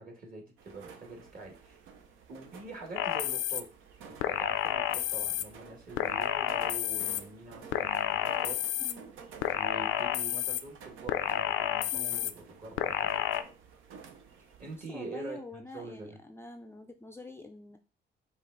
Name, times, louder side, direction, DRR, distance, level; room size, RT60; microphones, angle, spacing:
voice 1, 0.0-1.8 2.3-3.6 4.1-8.6 9.5-13.2 14.6-16.2, right 3 dB, 45° right, 0 dB, 1.7 m, -45 dB
sound 1, 0.6-14.8, right 6 dB, 85° right, 0.7 m, -52 dB
sound 2, 3.0-3.6 4.2-5.4 6.0-7.2 7.7-8.9 9.4-10.6 11.1-12.3 12.8-13.4, left 12 dB, 80° left, 0.4 m, -30 dB
voice 2, 8.8-9.2 11.9-12.3 14.9-17.8, left 2 dB, 10° left, 5 dB, 0.4 m, -46 dB
5.1 x 2.4 x 3.8 m, 0.35 s
cardioid pair, 90°, 20 cm